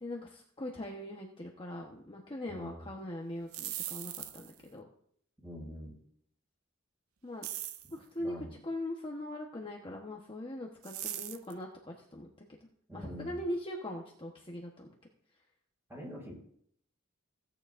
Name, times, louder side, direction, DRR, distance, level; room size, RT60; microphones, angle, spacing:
voice 1, 0.0-4.8 7.2-7.5 7.9-8.3 8.6-12.6 12.9-14.9, left 1 dB, 25° left, -1 dB, 1.1 m, -41 dB
voice 2, 2.5-2.9 5.4-5.9 8.2-8.5 12.9-13.4 15.9-16.3, equal, 10° right, -3 dB, 5.4 m, -44 dB
sound 1, 3.4-4.6 7.4-7.9 10.8-11.5, right 12 dB, 85° right, 0.7 m, -40 dB
16.5 x 9.0 x 2.6 m, 0.65 s
head